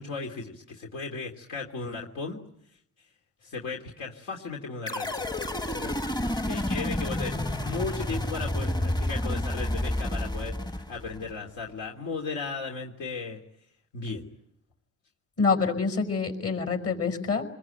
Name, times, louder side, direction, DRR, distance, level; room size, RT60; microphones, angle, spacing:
voice 1, 0.0-2.4 3.4-5.3 5.8-5.9 6.4-13.4 13.9-14.3, left 4 dB, 85° left, 0 dB, 3.1 m, -36 dB
sound 1, 4.9-11.3, left 1 dB, 15° left, 1.0 m, -30 dB
voice 2, 15.4-17.4, left 4 dB, 50° left, 6 dB, 5.6 m, -26 dB
28.0 x 21.5 x 9.1 m, 0.74 s
cardioid pair, 90°, 30 cm